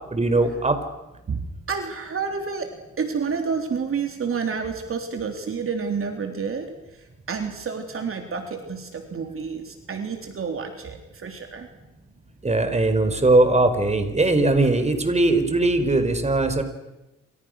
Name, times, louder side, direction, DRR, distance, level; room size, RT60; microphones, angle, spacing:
voice 1, 0.1-0.7 12.4-16.6, right 2 dB, 20° right, 9 dB, 4.5 m, -20 dB
voice 2, 1.3-11.7, right 5 dB, 45° right, 5 dB, 3.5 m, -30 dB
29.0 x 26.5 x 6.5 m, 0.99 s
cardioid pair, 90°, 30 cm